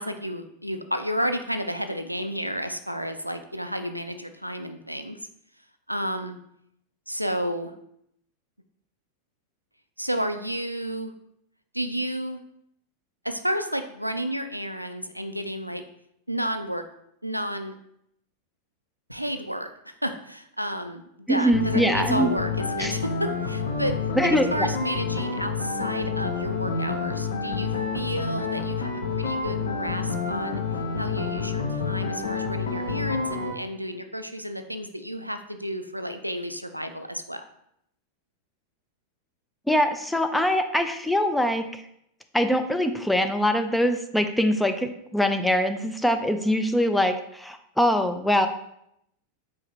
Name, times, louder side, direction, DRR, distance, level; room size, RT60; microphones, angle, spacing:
voice 1, 0.0-5.2 5.9-6.4 7.1-7.7 10.0-11.1 11.7-12.4 13.2-15.8 16.3-16.8 17.2-17.8 19.1-24.0 24.5-30.6 31.0-37.4, equal, 90° right, 8 dB, 0.3 m, -31 dB
voice 2, 21.3-22.3 22.8-22.9 24.2-24.7 39.7-41.8 42.3-48.5, equal, ahead, 7 dB, 0.4 m, -23 dB
sound 1, 21.5-33.5, left 4 dB, 65° left, 0.6 m, -29 dB
4.8 x 3.4 x 3.0 m, 0.75 s
figure-of-eight pair, 90°, 0 cm